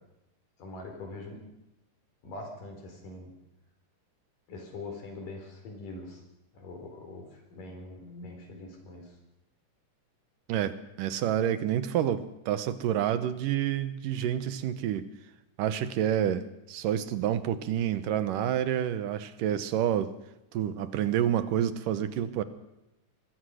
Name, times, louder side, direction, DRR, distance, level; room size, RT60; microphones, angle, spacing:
voice 1, 0.6-1.4 2.2-3.3 4.5-6.2 6.5-9.2, left 2 dB, 70° left, 3 dB, 5.6 m, -43 dB
voice 2, 10.5-15.1 15.6-20.1 20.5-22.4, right 10 dB, 75° right, 12 dB, 2.6 m, -28 dB
24.5 x 20.5 x 6.4 m, 0.90 s
omnidirectional pair, 3.9 m